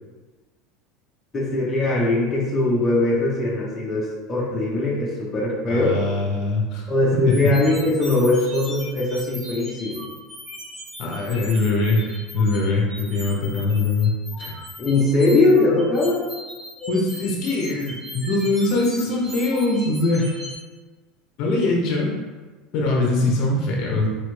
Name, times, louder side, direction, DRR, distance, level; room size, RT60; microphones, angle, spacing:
voice 1, 1.3-6.0 6.9-10.1 14.8-16.2, left 2 dB, 15° left, -6 dB, 0.8 m, -21 dB
voice 2, 5.7-6.9 7.3-7.4 11.0-14.1 14.4-14.5 16.9-20.4 21.4-22.1 22.7-24.1, left 2 dB, 45° left, -1 dB, 0.7 m, -22 dB
sound 1, 7.3-20.5, equal, 15° right, 1.1 m, -38 dB
4.2 x 3.2 x 3.2 m, 1.3 s
cardioid pair, 170°, 0 cm